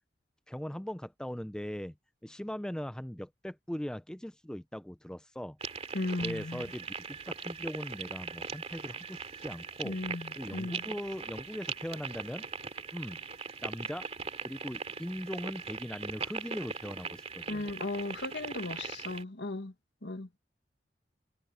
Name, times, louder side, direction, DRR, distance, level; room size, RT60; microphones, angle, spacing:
voice 1, 0.5-1.9 2.2-5.6 6.2-10.0 10.4-12.5 12.9-13.2 13.6-14.1 14.4-17.7, equal, 5° left, 0.4 m, -40 dB
sound 1, 5.6-19.2, right 5 dB, 35° right, 2.7 m, -40 dB
voice 2, 5.9-6.6 9.8-10.8 17.5-19.7 20.0-20.3, left 2 dB, 70° left, 1.5 m, -36 dB
head